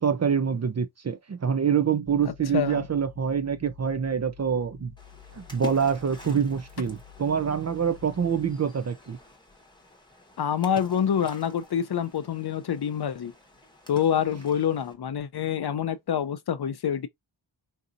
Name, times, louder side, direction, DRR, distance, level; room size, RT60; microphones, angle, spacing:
voice 1, 0.0-4.9 5.3-9.2, right 7 dB, 40° right, 0.4 m, -26 dB
sound 1, 2.0-8.5, left 11 dB, 60° right, 1.5 m, -51 dB
voice 2, 2.3-2.9 10.4-13.3 13.9-17.1, left 8 dB, 60° left, 0.6 m, -27 dB
Splash splatter, 5.0-14.9, left 1 dB, 10° left, 1.0 m, -48 dB
3.9 x 2.8 x 2.4 m
wide cardioid pair, 80°, 45 cm